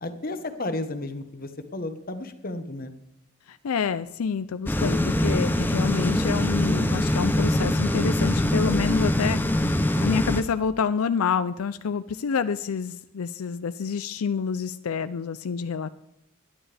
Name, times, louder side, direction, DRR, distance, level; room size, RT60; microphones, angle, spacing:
voice 1, 0.0-2.9, left 2 dB, 40° left, 8 dB, 1.2 m, -33 dB
voice 2, 3.5-9.4 10.0-15.9, left 6 dB, 90° left, 12 dB, 0.5 m, -28 dB
sound 1, 4.6-10.4, left 1 dB, 10° left, 0.7 m, -23 dB
18.5 x 11.0 x 3.4 m, 0.85 s
head